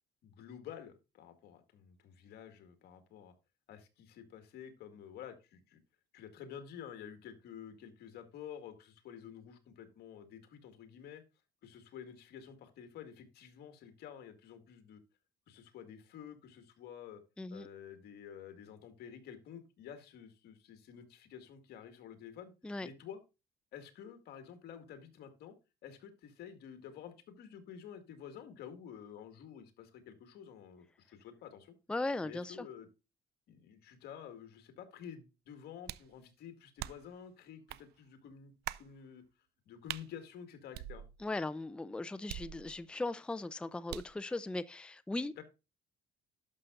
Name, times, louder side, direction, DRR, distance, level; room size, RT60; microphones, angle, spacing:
voice 1, 0.2-3.3 3.7-5.8 6.1-11.2 11.6-15.0 15.5-17.2 17.5-22.5 22.8-23.2 23.7-25.5 25.8-31.7 32.2-32.9 33.5-39.2 39.7-41.0 45.4-45.5, left 8 dB, 70° left, 2.0 m, -50 dB
voice 2, 31.9-32.7 41.2-45.4, left 2 dB, 5° left, 0.4 m, -38 dB
sound 1, 35.8-36.2 36.8-37.2 37.7-37.8 38.6-38.9 39.9-40.1 40.7-41.4 42.3-43.0 43.9-44.2, right 14 dB, 75° right, 0.4 m, -43 dB
11.5 x 6.7 x 2.5 m
cardioid pair, 110°, 17 cm